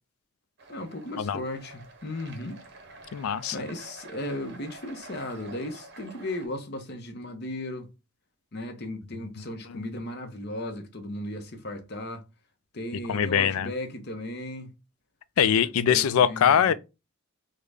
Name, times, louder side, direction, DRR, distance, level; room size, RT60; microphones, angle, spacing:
sound 1, 0.6-6.5, right 3 dB, 50° right, 0.7 m, -48 dB
voice 1, 0.7-2.6 3.5-7.9 8.5-12.2 12.7-14.7 15.6-16.7, left 1 dB, 50° left, 0.7 m, -36 dB
voice 2, 3.1-3.6 13.1-13.7 15.4-16.7, left 8 dB, 80° left, 0.3 m, -22 dB
3.7 x 2.1 x 3.3 m
head